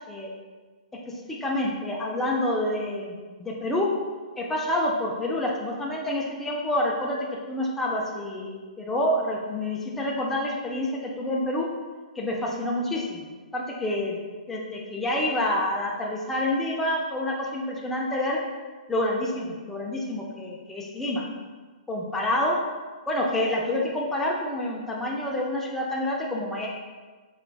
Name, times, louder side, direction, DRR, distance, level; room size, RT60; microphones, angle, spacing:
voice 1, 1.3-3.9 4.4-11.7 12.2-13.3 13.5-14.2 14.5-18.4 18.9-21.2 21.9-22.6 23.1-26.7, left 1 dB, 5° left, -3 dB, 0.4 m, -28 dB
3.9 x 3.2 x 2.2 m, 1.4 s
hypercardioid pair, 130°, 4 cm